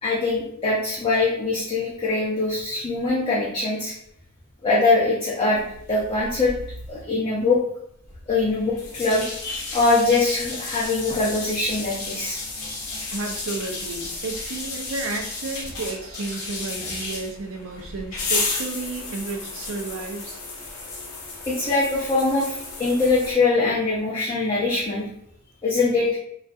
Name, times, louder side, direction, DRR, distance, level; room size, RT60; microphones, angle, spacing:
voice 1, 0.0-3.9 4.6-5.6 5.9-6.5 6.9-7.6 8.3-12.4 12.7-12.8 21.5-25.1 25.6-26.1, left 3 dB, 25° left, -6 dB, 0.5 m, -22 dB
sound 1, 5.5-7.0 8.0-23.3, left 3 dB, 80° left, 0.7 m, -33 dB
voice 2, 13.1-20.4, right 3 dB, 60° right, 3 dB, 0.4 m, -32 dB
2.5 x 2.3 x 2.3 m, 0.72 s
head